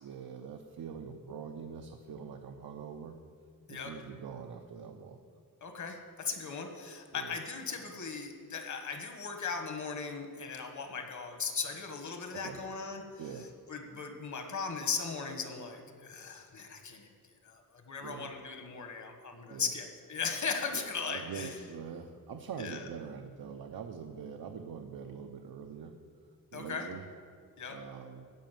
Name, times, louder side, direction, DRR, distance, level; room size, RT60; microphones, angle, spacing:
voice 1, 0.0-3.2 3.7-5.2 7.1-7.4 12.3-12.6 13.2-13.5 18.0-18.3 19.5-19.7 20.7-26.0 26.5-27.0 27.7-28.3, right 6 dB, 85° right, 4 dB, 0.8 m, -44 dB
voice 2, 5.6-13.0 13.7-17.1 17.4-21.5 22.6-22.8 26.5-26.9 27.6-27.8, left 5 dB, 55° left, 5 dB, 1.5 m, -38 dB
15.0 x 5.2 x 9.2 m, 2.1 s
wide cardioid pair, 165°, 35 cm